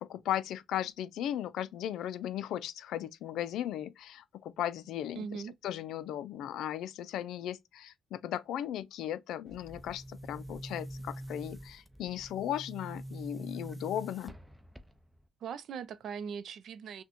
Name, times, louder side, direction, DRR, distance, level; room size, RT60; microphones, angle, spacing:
voice 1, 0.0-14.3, left 11 dB, 90° left, 0.3 m, -37 dB
voice 2, 5.2-5.5 15.4-17.0, right 6 dB, 70° right, 0.5 m, -40 dB
Boom, 9.5-15.3, right 1 dB, 5° right, 0.6 m, -45 dB
6.0 x 2.2 x 2.8 m
cardioid pair, 110°, 0 cm